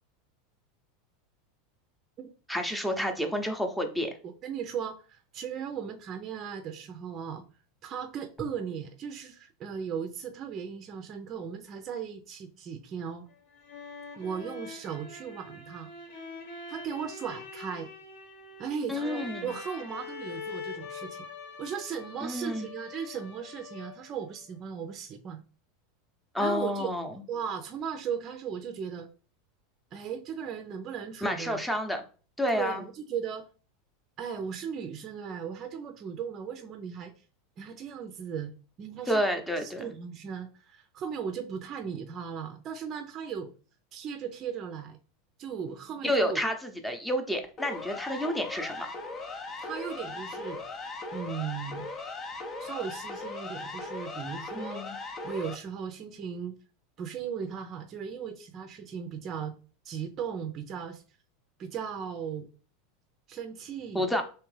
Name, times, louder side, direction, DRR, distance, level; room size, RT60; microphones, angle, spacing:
voice 1, 2.5-4.2 18.9-19.5 22.2-22.7 26.3-27.1 31.2-32.0 32.4-32.8 39.1-39.9 46.0-48.9 54.5-55.0 63.9-64.2, equal, 5° left, 0.8 m, -29 dB
voice 2, 4.4-7.4 7.8-13.3 14.2-15.9 16.7-17.9 18.6-21.2 21.6-25.4 26.4-26.9 27.3-29.1 29.9-31.6 32.5-33.5 34.2-37.1 37.6-38.5 38.8-39.3 39.6-43.5 43.9-45.0 45.4-46.4 49.6-50.6 51.1-51.9 52.6-54.9 55.2-56.5 57.0-59.5 59.8-61.0 61.6-62.5 63.3-64.1, right 7 dB, 40° right, 0.5 m, -37 dB
sound 1, 13.3-24.2, left 4 dB, 65° left, 1.0 m, -44 dB
Siren, 47.6-55.6, left 3 dB, 35° left, 0.7 m, -39 dB
3.4 x 2.9 x 3.2 m
hypercardioid pair, 90°, 0 cm